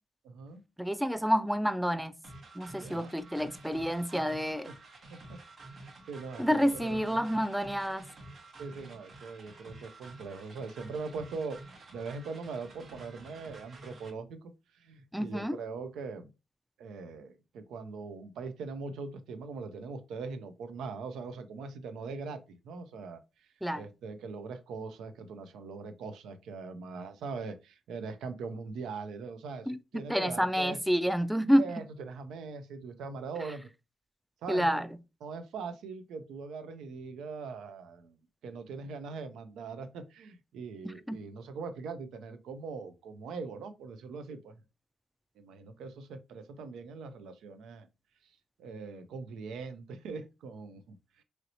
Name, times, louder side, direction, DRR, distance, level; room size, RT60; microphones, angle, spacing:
voice 1, 0.2-0.6 2.8-3.1 4.7-4.8 5.1-5.4 6.1-7.2 8.6-16.3 16.8-23.5 23.7-30.8 31.6-33.7 34.4-34.8 35.2-38.2 38.4-44.5 45.4-47.9 48.2-51.2, right 4 dB, 90° right, 0.4 m, -41 dB
voice 2, 0.8-2.1 2.6-4.7 6.4-8.0 15.1-15.6 23.6-23.8 29.7-31.7 34.5-34.9 41.1-41.2, equal, 5° right, 0.3 m, -28 dB
sound 1, 2.2-14.1, right 2 dB, 60° right, 0.9 m, -50 dB
3.1 x 2.8 x 2.6 m
cardioid pair, 70°, 0 cm